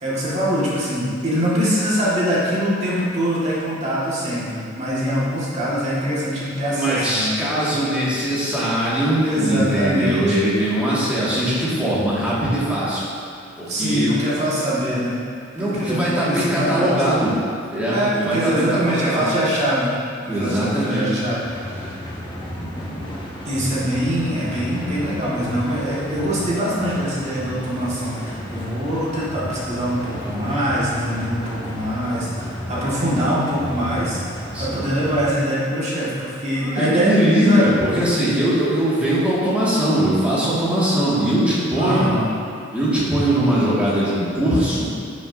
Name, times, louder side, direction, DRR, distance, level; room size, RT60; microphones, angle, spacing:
voice 1, 0.0-7.3 9.2-10.4 13.7-15.2 15.6-16.9 17.9-22.0 23.4-37.7 41.8-42.3, equal, 35° right, -8 dB, 1.8 m, -23 dB
voice 2, 6.7-13.0 13.6-14.1 15.5-17.3 17.7-19.3 20.2-21.1 22.5-23.1 34.5-34.8 36.5-42.1 42.7-44.9, right 1 dB, 5° right, -10 dB, 2.0 m, -21 dB
sound 1, 21.4-35.3, equal, 25° left, 1.0 m, -33 dB
10.5 x 6.2 x 2.7 m, 2.4 s
head